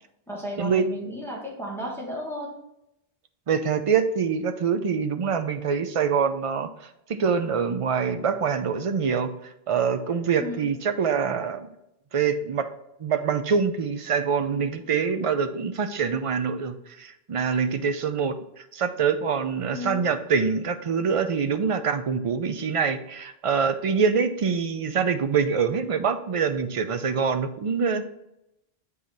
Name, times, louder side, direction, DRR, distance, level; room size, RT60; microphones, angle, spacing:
voice 1, 0.3-2.6 10.4-10.7 19.7-20.0, equal, ahead, -2 dB, 1.3 m, -34 dB
voice 2, 3.5-9.3 9.7-11.7 12.1-12.7 13.0-28.1, right 6 dB, 45° right, 9 dB, 0.5 m, -25 dB
7.7 x 3.8 x 4.1 m, 0.83 s
omnidirectional pair, 1.0 m